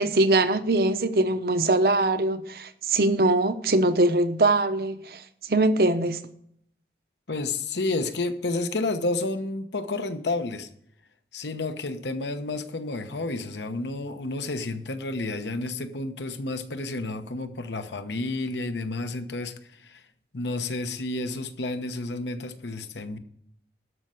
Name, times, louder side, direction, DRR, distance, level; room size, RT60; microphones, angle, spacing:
voice 1, 0.0-5.2 5.5-6.2, right 2 dB, 60° right, 0.8 m, -22 dB
voice 2, 7.3-10.7 11.3-20.0 20.3-23.2, left 2 dB, 85° left, 1.0 m, -30 dB
12.5 x 5.6 x 7.7 m
head